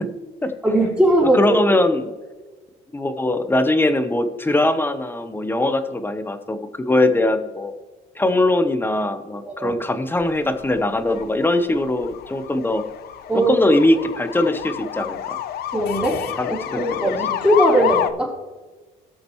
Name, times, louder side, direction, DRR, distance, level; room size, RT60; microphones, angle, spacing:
voice 1, 0.6-1.4 9.4-9.8 13.3-13.5 15.7-16.2 16.5-18.3, right 1 dB, 5° right, -4 dB, 3.6 m, -19 dB
voice 2, 1.3-2.1 2.9-7.7 8.2-12.8 13.3-15.4 16.4-17.0, left 1 dB, 10° left, 9 dB, 0.9 m, -21 dB
sound 1, 10.2-18.1, left 11 dB, 70° left, 0.7 m, -29 dB
18.0 x 6.6 x 3.1 m, 1.3 s
cardioid pair, 110°, 17 cm